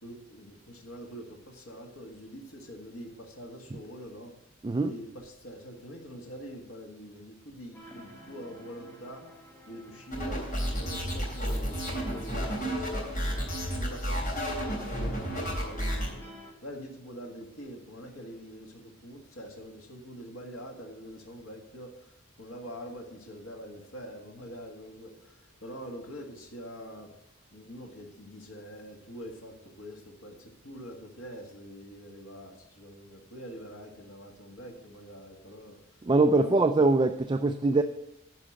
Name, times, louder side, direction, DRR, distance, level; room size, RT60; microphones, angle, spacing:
voice 1, 0.0-4.3 4.9-9.3 9.6-10.5 10.7-16.3 16.6-27.1 27.5-36.1 36.3-36.7, equal, 80° left, 1.8 m, -45 dB
voice 2, 4.6-4.9 36.0-37.8, right 3 dB, 20° right, 0.3 m, -23 dB
sound 1, 7.7-16.5, equal, 10° left, 1.4 m, -51 dB
sound 2, 10.1-16.1, equal, 40° left, 3.6 m, -31 dB
10.5 x 5.0 x 6.3 m
head